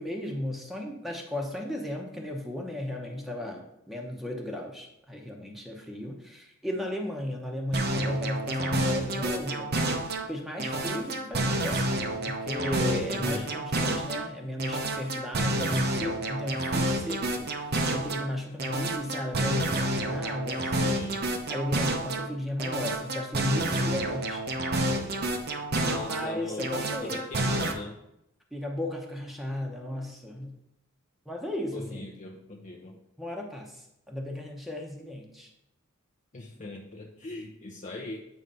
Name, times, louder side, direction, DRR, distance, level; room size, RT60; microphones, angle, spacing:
voice 1, 0.0-9.7 10.3-20.7 21.5-24.4 26.1-27.2 28.5-30.5 31.3-32.1 33.2-35.5, left 1 dB, ahead, 0 dB, 0.9 m, -35 dB
sound 1, 7.7-10.3 10.6-14.3 14.6-18.3 18.6-22.3 22.6-26.3 26.6-27.7, right 1 dB, 50° right, 0.8 m, -29 dB
voice 2, 13.1-13.5 20.8-21.3 25.8-26.7 27.0-28.0 31.7-33.0 36.3-38.2, left 2 dB, 35° left, 0 dB, 0.6 m, -39 dB
8.9 x 3.2 x 5.4 m, 0.83 s
head